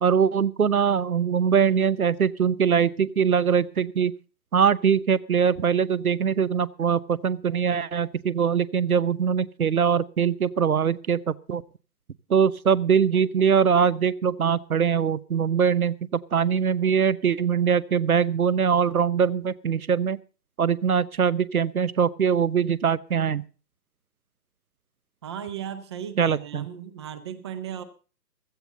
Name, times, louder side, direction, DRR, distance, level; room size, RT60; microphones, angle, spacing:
voice 1, 0.0-4.1 4.5-11.6 12.3-20.2 20.6-23.4 26.2-26.7, right 7 dB, 60° right, 0.9 m, -22 dB
voice 2, 25.2-27.8, right 9 dB, 15° right, 0.8 m, -36 dB
16.0 x 14.0 x 3.9 m
figure-of-eight pair, 135°, 49 cm